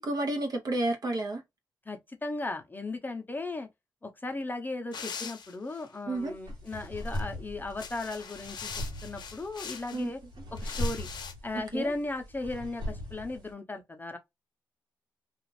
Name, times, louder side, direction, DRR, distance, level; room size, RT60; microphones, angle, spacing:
voice 1, 0.0-1.4 6.1-6.3 9.9-10.1 11.7-11.9, right 2 dB, 55° right, 0.9 m, -30 dB
voice 2, 1.9-3.7 4.0-8.7 9.0-10.2 10.6-11.1 11.4-14.2, left 2 dB, 25° left, 0.7 m, -36 dB
sound 1, 4.9-5.9 6.7-7.2 7.7-10.0 10.6-11.3, left 6 dB, 70° left, 0.7 m, -42 dB
sound 2, 6.2-13.5, left 1 dB, 80° right, 1.3 m, -39 dB
2.4 x 2.4 x 3.1 m
cardioid pair, 65°, 8 cm